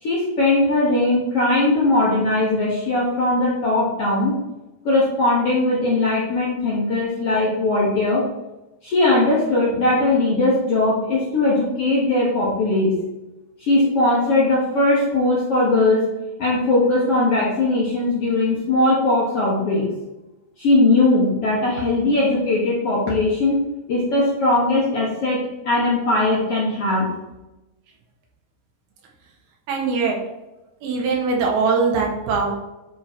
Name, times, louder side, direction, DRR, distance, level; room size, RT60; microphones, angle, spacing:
voice 1, 0.0-4.3 4.8-8.2 8.8-12.9 13.6-16.0 16.4-19.9 20.6-23.6 23.9-27.1, left 2 dB, 55° left, -5 dB, 1.7 m, -19 dB
voice 2, 29.7-30.2 30.8-32.5, right 4 dB, 75° right, 0 dB, 3.3 m, -21 dB
10.0 x 3.8 x 4.5 m, 1.0 s
omnidirectional pair, 4.5 m